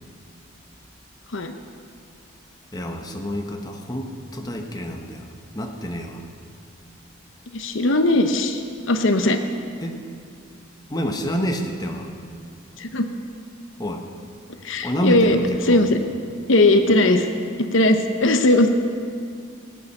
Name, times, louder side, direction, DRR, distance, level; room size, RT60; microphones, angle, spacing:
voice 1, 2.7-5.3 5.5-6.2 9.8-9.9 10.9-12.1 13.8-14.0 14.8-15.4 15.7-15.8, equal, 20° left, 3 dB, 1.0 m, -27 dB
voice 2, 7.5-8.6 8.9-9.4 12.8-13.1 14.6-16.0 16.5-17.3 17.7-18.7, left 2 dB, 65° left, 7 dB, 0.9 m, -18 dB
18.5 x 8.6 x 6.6 m, 2.3 s
head